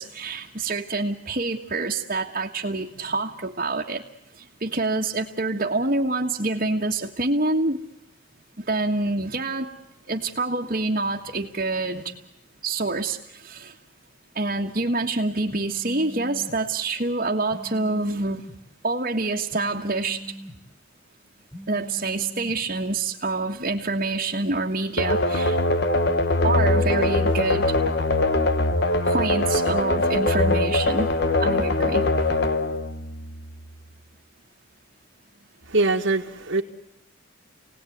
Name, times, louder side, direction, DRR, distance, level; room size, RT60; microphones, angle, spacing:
voice 1, 0.0-4.0 4.4-7.8 8.6-9.7 10.1-12.1 12.6-13.7 14.3-18.5 18.8-20.2 21.7-25.6 26.4-27.7 29.0-31.1 31.4-32.1, right 3 dB, 40° right, -2 dB, 1.6 m, -26 dB
sound 1, 15.5-16.6 17.5-18.6 19.5-20.6 21.5-22.6, right 1 dB, 5° left, 2.0 m, -40 dB
sound 2, 25.0-33.7, left 2 dB, 50° left, 1.3 m, -22 dB
voice 2, 35.7-36.6, right 2 dB, 75° right, -3 dB, 1.8 m, -22 dB
29.0 x 19.0 x 9.4 m, 0.86 s
head